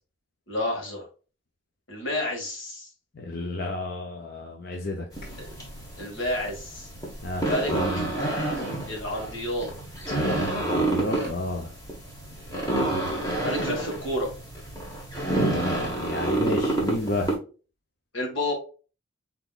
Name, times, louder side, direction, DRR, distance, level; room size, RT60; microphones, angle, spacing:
voice 1, 0.5-1.1 1.9-2.9 5.4-5.5 6.0-6.9 7.4-7.7 8.9-9.7 10.1-10.2 13.4-14.3 18.1-18.5, left 1 dB, 85° left, 0 dB, 2.1 m, -30 dB
voice 2, 3.1-5.1 7.2-8.1 10.5-11.7 16.0-17.3, left 2 dB, 50° left, 2 dB, 0.7 m, -31 dB
sound 1, 5.1-17.4, right 1 dB, 20° left, 1.4 m, -29 dB
5.8 x 3.5 x 2.5 m, 0.35 s
head